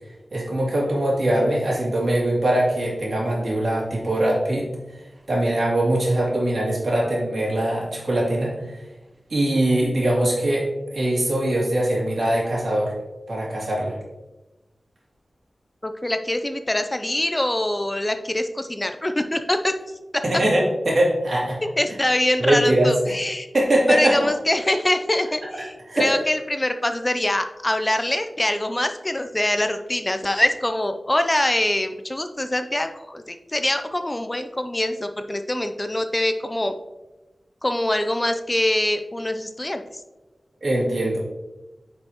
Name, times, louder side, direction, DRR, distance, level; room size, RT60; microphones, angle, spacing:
voice 1, 0.3-4.7 5.3-8.5 9.3-12.9 13.3-13.9 20.2-21.6 22.4-23.2 23.5-24.2 25.5-26.1 40.6-41.2, right 1 dB, 65° right, -4 dB, 2.6 m, -22 dB
voice 2, 15.8-19.7 20.1-20.2 21.8-23.5 23.9-36.7 37.6-39.8, left 1 dB, 20° left, 8 dB, 0.5 m, -24 dB
9.3 x 5.3 x 3.0 m, 1.1 s
wide cardioid pair, 75°, 0 cm